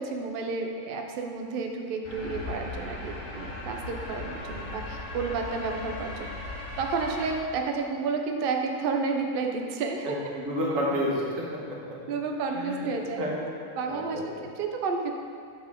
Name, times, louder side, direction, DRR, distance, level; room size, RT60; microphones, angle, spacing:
voice 1, 0.0-6.3 6.8-10.1 12.1-13.3 13.8-15.1, right 4 dB, 85° right, 3 dB, 0.4 m, -31 dB
sound 1, 2.0-7.3, left 2 dB, 55° left, 1.2 m, -38 dB
voice 2, 10.3-11.6 12.5-12.9 13.2-13.3 13.8-14.2, equal, 60° right, -4 dB, 1.5 m, -29 dB
7.1 x 4.4 x 3.5 m, 2.3 s
omnidirectional pair, 1.6 m